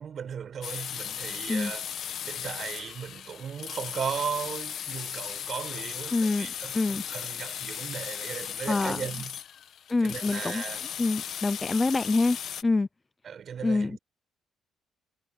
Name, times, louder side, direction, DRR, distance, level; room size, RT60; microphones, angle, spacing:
voice 1, 0.0-1.9 2.3-9.4 10.0-10.9 13.2-14.0, right 7 dB, 55° right, 5.8 m, -36 dB
sound 1, 0.6-12.6, left 9 dB, 65° left, 1.4 m, -37 dB
voice 2, 6.1-6.5 6.7-7.0 8.7-9.0 9.9-10.6 11.0-12.4 12.6-12.9 13.6-14.0, left 3 dB, 25° left, 0.7 m, -25 dB
cardioid pair, 90°, 0 cm